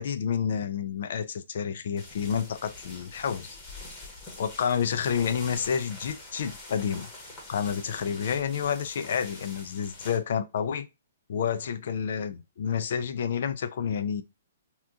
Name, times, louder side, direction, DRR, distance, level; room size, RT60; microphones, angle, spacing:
voice 1, 0.0-3.6 4.4-7.1 7.5-10.9 11.3-14.2, left 7 dB, 60° left, 0.4 m, -29 dB
sound 1, 2.0-10.2, left 2 dB, 20° left, 1.1 m, -45 dB
2.9 x 2.3 x 3.5 m
hypercardioid pair, 155°, 0 cm